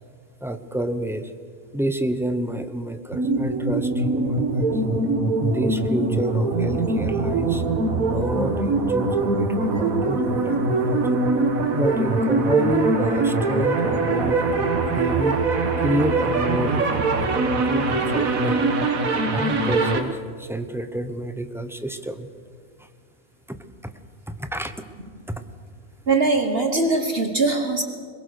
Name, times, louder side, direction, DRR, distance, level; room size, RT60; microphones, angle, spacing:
voice 1, 0.4-1.3 1.7-4.8 5.4-7.6 7.9-11.2 11.7-15.4 15.8-18.6 19.3-22.3 22.8-22.9 23.5-23.6 23.8-23.9 24.3-24.7 25.3-25.4, right 1 dB, ahead, 9 dB, 0.8 m, -29 dB
sound 1, 3.1-20.0, right 3 dB, 70° right, 2.0 m, -22 dB
voice 2, 26.1-27.8, right 3 dB, 45° right, 6 dB, 1.5 m, -22 dB
22.5 x 21.0 x 6.5 m, 2.1 s
omnidirectional pair, 1.5 m